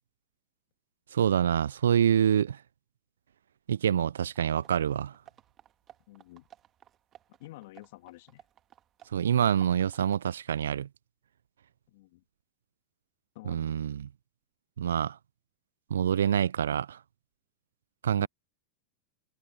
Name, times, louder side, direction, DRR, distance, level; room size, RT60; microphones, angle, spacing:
voice 1, 1.1-2.6 3.7-5.2 9.1-10.9 13.5-14.1 14.8-15.2 15.9-17.0 18.0-18.3, right 9 dB, 80° right, 0.3 m, -26 dB
sound 1, 4.3-10.2, right 10 dB, 35° right, 1.8 m, -58 dB
voice 2, 6.1-6.5 7.4-8.4 11.9-12.2 13.4-13.8 18.2-18.3, left 19 dB, 60° left, 2.0 m, -49 dB
hypercardioid pair, 95°, 0 cm